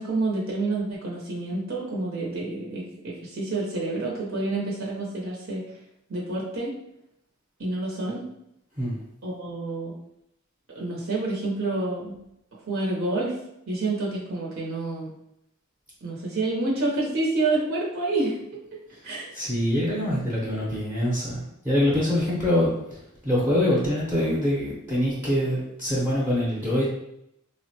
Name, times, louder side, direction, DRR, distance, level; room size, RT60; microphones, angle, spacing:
voice 1, 0.0-5.6 6.1-6.7 7.6-8.2 9.2-9.9 10.7-12.2 12.7-13.4 13.7-15.1 16.0-18.4 19.0-19.3, right 2 dB, 70° right, -4 dB, 0.7 m, -28 dB
voice 2, 19.3-26.9, left 1 dB, 10° right, -7 dB, 0.6 m, -24 dB
3.6 x 2.1 x 2.7 m, 0.79 s
head